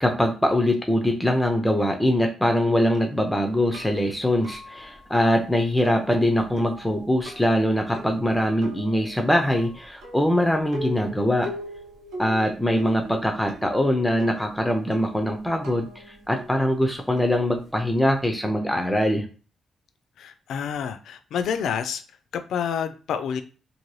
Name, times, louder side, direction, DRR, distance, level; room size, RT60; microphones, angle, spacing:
voice 1, 0.0-11.5 12.2-19.3, equal, 5° left, 3 dB, 0.4 m, -23 dB
sound 1, 2.9-18.3, equal, 85° right, 0.8 m, -42 dB
voice 2, 20.2-22.0 22.3-23.4, left 7 dB, 75° left, 9 dB, 0.3 m, -28 dB
2.6 x 2.6 x 3.1 m, 0.37 s
cardioid pair, 135°, 0 cm